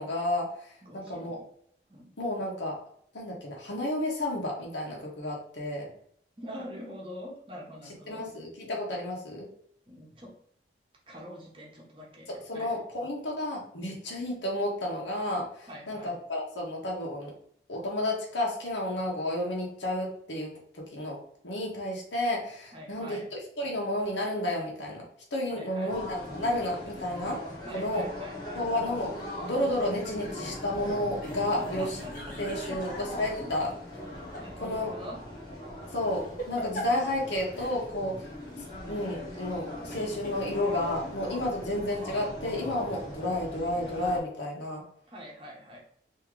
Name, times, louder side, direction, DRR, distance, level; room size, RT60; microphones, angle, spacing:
voice 1, 0.0-1.4 2.2-2.8 3.1-5.9 7.8-9.5 12.3-17.3 17.7-21.2 21.4-25.0 25.3-27.4 27.7-28.1 28.5-32.0 32.4-33.7 34.6-35.0 35.9-38.2 38.6-44.8, left 1 dB, 85° left, -2 dB, 1.1 m, -31 dB
voice 2, 0.8-1.4 1.9-2.1 6.4-8.3 9.9-10.4 11.1-12.7 15.7-16.2 22.7-23.3 25.5-26.0 27.6-28.7 31.6-32.4 32.7-32.8 34.4-35.2 45.1-45.8, equal, 30° right, -2 dB, 1.0 m, -44 dB
sound 1, 25.9-44.2, left 1 dB, 25° left, 1.0 m, -40 dB
sound 2, 29.2-29.7 31.2-33.2 33.9-34.5 34.8-34.9 35.9-37.2 37.5-38.1 38.5-38.6 39.9-41.1, equal, 45° left, 0.8 m, -43 dB
3.7 x 2.8 x 3.1 m, 0.64 s
head